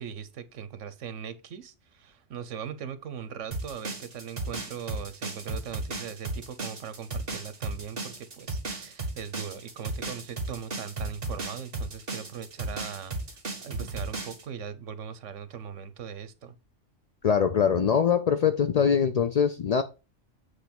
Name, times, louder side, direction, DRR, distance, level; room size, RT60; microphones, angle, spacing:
voice 1, 0.0-16.5, right 7 dB, 80° right, 1.2 m, -40 dB
sound 1, 3.5-14.4, right 3 dB, 50° right, 1.9 m, -34 dB
voice 2, 17.2-19.8, left 7 dB, 70° left, 0.3 m, -23 dB
8.1 x 3.2 x 5.9 m
omnidirectional pair, 1.3 m